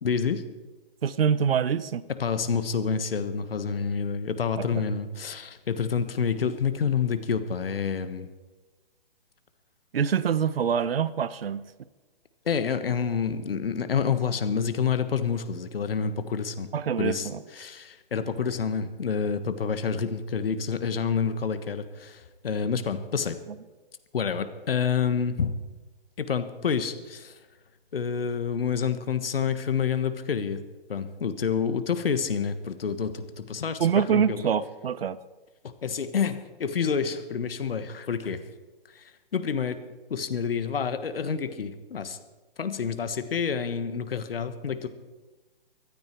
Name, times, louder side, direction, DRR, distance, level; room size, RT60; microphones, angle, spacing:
voice 1, 0.0-0.4 2.2-8.3 12.4-16.7 17.0-23.4 24.1-25.5 26.2-27.4 27.9-30.6 30.9-34.5 35.6-38.4 38.9-39.8 40.1-42.2 42.6-44.9, left 6 dB, 75° left, 11 dB, 1.4 m, -28 dB
voice 2, 1.0-2.0 4.6-4.8 9.9-11.7 16.7-17.4 33.8-35.2, right 7 dB, 80° right, 16 dB, 0.8 m, -25 dB
24.0 x 9.5 x 4.6 m, 1.2 s
hypercardioid pair, 145°, 29 cm